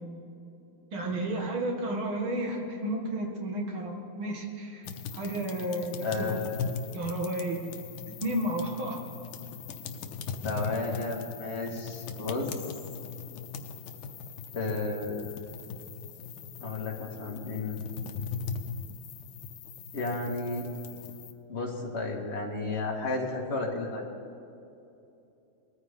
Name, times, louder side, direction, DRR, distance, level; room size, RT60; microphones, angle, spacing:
voice 1, 0.9-6.4 6.9-7.6 8.2-9.0, right 1 dB, 80° right, 1 dB, 2.7 m, -32 dB
sound 1, 4.8-21.3, left 5 dB, 80° left, 1.7 m, -40 dB
voice 2, 6.0-6.6 10.4-12.5 14.5-15.3 16.6-17.8 19.9-20.7 21.5-24.1, left 3 dB, 35° left, -1 dB, 2.0 m, -32 dB
20.5 x 14.0 x 3.7 m, 2.8 s
omnidirectional pair, 2.2 m